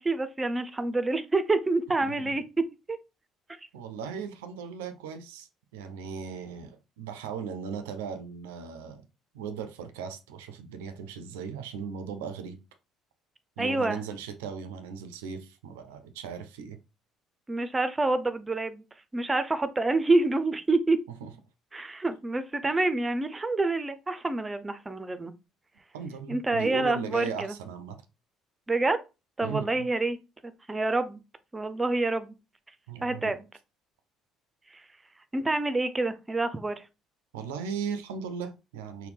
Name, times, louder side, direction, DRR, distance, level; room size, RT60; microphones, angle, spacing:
voice 1, 0.0-2.4 2.9-3.0 13.6-14.0 17.5-18.8 19.1-21.0 21.7-25.3 26.3-27.5 28.7-29.0 29.4-30.2 30.7-31.2 31.5-32.3 33.0-33.4 35.3-36.8, right 2 dB, 20° right, 0.5 m, -27 dB
voice 2, 2.0-2.4 3.7-9.0 9.3-12.6 13.6-16.8 21.2-21.3 25.9-28.0 29.4-29.9 32.9-33.3 37.3-39.1, right 6 dB, 70° right, 0.4 m, -37 dB
4.0 x 2.1 x 3.4 m
figure-of-eight pair, 50°, 0 cm